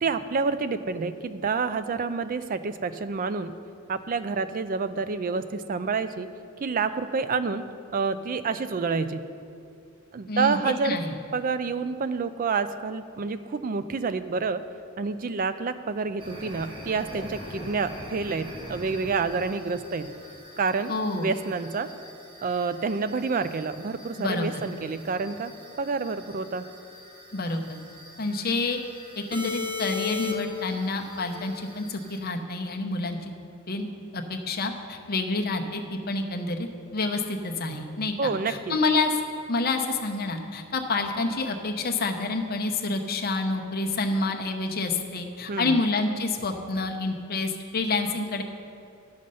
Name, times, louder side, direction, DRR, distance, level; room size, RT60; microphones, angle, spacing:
voice 1, 0.0-3.5 3.9-6.3 6.6-7.7 7.9-9.2 10.1-11.0 11.3-14.6 15.0-20.1 20.6-21.9 22.4-25.5 25.8-26.6 38.2-38.7 45.1-45.2 45.5-45.8, right 4 dB, 40° right, 12 dB, 0.4 m, -28 dB
voice 2, 10.3-10.6 10.8-11.1 20.9-21.3 24.2-24.5 24.8-24.9 27.3-27.8 28.2-28.8 29.2-33.3 33.7-33.9 34.1-36.7 36.9-39.1 39.5-48.4, left 3 dB, 45° left, 4 dB, 0.8 m, -28 dB
sound 1, 16.2-32.2, left 4 dB, 25° right, 1.3 m, -39 dB
11.5 x 6.4 x 5.5 m, 2.4 s
head